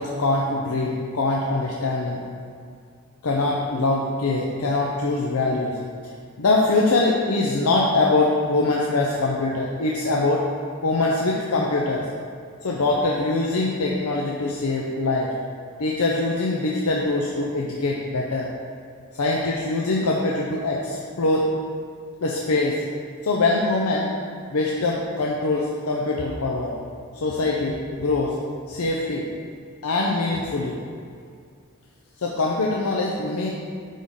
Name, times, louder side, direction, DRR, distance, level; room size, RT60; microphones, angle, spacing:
voice 1, 0.0-2.2 3.2-5.8 6.4-10.5 10.8-12.1 12.6-15.3 15.8-18.5 19.1-21.5 22.2-22.8 23.2-24.1 24.5-26.7 27.2-28.4 28.7-29.3 29.8-30.8 32.2-33.5, left 2 dB, 85° left, -2 dB, 0.7 m, -23 dB
10.0 x 3.7 x 3.7 m, 2.2 s
head